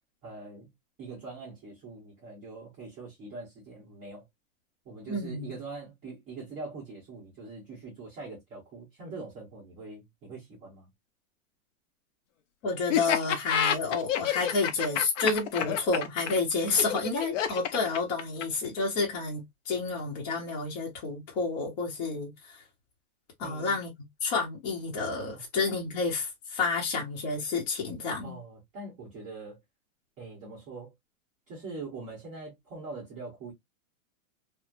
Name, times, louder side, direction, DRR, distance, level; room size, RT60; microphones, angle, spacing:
voice 1, 0.2-0.7 1.0-4.2 4.8-10.9 23.4-23.8 25.3-25.4 28.2-29.6 30.2-30.9 31.5-33.5, right 3 dB, 20° right, 1.0 m, -43 dB
voice 2, 5.1-5.5 12.6-22.6 23.4-23.9 24.2-28.4, left 4 dB, 30° left, 0.8 m, -30 dB
Laughter, 12.9-18.7, left 9 dB, 60° left, 0.6 m, -28 dB
3.1 x 2.0 x 2.4 m
hypercardioid pair, 165°, 43 cm